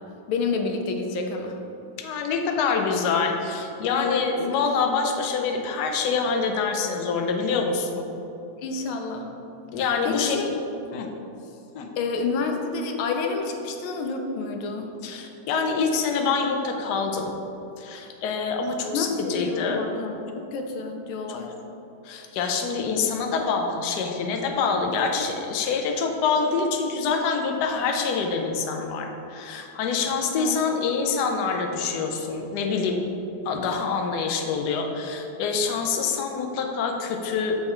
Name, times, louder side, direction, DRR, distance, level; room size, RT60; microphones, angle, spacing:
voice 1, 0.3-1.6 3.9-4.2 8.6-9.3 10.0-10.5 12.0-14.9 18.9-21.5 30.4-30.6, left 4 dB, 90° left, 3 dB, 1.4 m, -29 dB
voice 2, 2.0-8.0 9.7-10.5 10.9-11.1 11.7-11.9 15.0-17.3 17.8-19.8 22.0-33.0 33.4-37.6, left 5 dB, 65° left, 2 dB, 1.1 m, -26 dB
6.8 x 4.2 x 4.4 m, 2.9 s
omnidirectional pair, 2.2 m